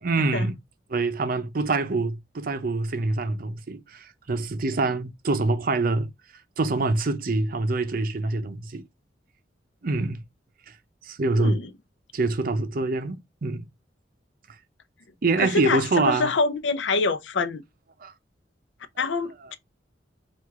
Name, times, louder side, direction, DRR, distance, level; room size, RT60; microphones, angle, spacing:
voice 1, 0.0-0.5 0.9-6.1 6.6-8.8 9.8-10.2 10.7-10.8 11.0-11.6 12.1-13.7 15.2-16.3 18.0-18.1 19.0-19.1, right 3 dB, 50° right, 0.6 m, -25 dB
voice 2, 11.3-11.7 15.4-17.6 19.0-19.5, left 3 dB, 85° left, 0.6 m, -26 dB
4.7 x 2.4 x 3.5 m
head